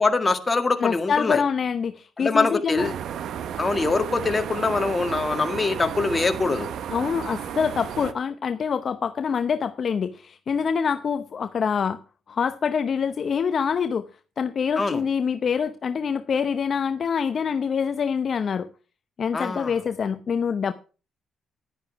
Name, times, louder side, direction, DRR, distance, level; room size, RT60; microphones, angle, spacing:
voice 1, 0.0-1.4 2.2-2.9 3.6-6.7 14.8-15.0 19.3-19.7, left 3 dB, 25° left, 7 dB, 2.0 m, -23 dB
voice 2, 0.8-2.9 6.9-12.0 12.3-14.1 14.4-18.7 19.2-20.7, left 6 dB, 50° left, 10 dB, 0.7 m, -25 dB
sound 1, 2.8-8.1, right 9 dB, 70° right, 1.0 m, -33 dB
11.0 x 10.0 x 4.7 m, 0.35 s
cardioid pair, 90°, 0 cm